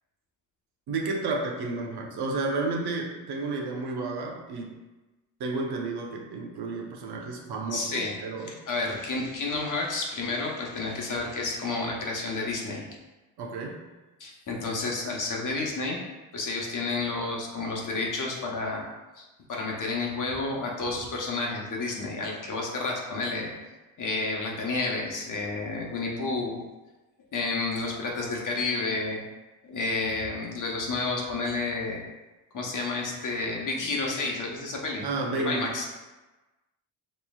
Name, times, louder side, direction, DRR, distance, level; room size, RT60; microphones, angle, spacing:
voice 1, 0.9-4.7 5.4-8.6 13.4-13.8 35.0-35.7, right 3 dB, 65° right, 0 dB, 0.9 m, -31 dB
voice 2, 7.7-8.1 8.4-12.9 14.2-16.0 16.3-18.8 19.1-23.5 24.0-26.6 27.3-29.2 29.6-32.0 32.5-35.9, left 3 dB, 45° left, -1 dB, 1.0 m, -30 dB
5.3 x 3.1 x 2.3 m, 1.1 s
supercardioid pair, 70°, 42 cm